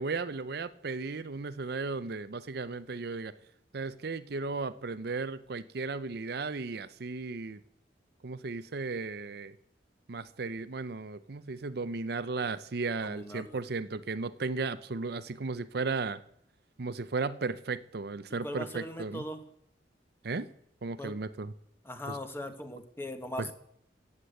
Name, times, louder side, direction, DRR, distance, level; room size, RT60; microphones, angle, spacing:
voice 1, 0.0-3.3 3.7-7.6 8.2-9.5 10.1-16.2 16.8-19.2 20.2-20.5 20.8-21.5 22.1-22.2 23.4-23.5, right 4 dB, 60° right, 13 dB, 0.6 m, -35 dB
voice 2, 13.0-13.6 18.3-19.4 21.0-21.2 21.8-23.5, left 1 dB, 15° left, 7 dB, 1.4 m, -40 dB
16.0 x 8.2 x 8.1 m, 0.71 s
head